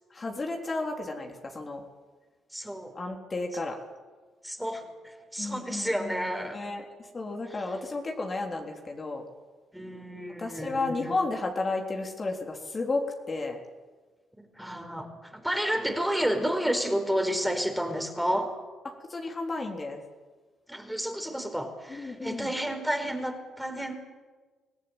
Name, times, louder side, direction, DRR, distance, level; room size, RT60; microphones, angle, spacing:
voice 1, 0.1-1.8 3.0-3.8 5.4-6.8 7.1-9.2 10.4-13.6 18.8-20.0 21.9-22.5, left 3 dB, 35° left, 1 dB, 3.7 m, -33 dB
voice 2, 2.5-2.9 4.4-6.6 7.5-7.7 9.7-11.2 14.4-18.5 20.7-23.9, equal, 5° right, 6 dB, 4.5 m, -31 dB
24.5 x 17.5 x 9.0 m, 1.4 s
hypercardioid pair, 50°, 0 cm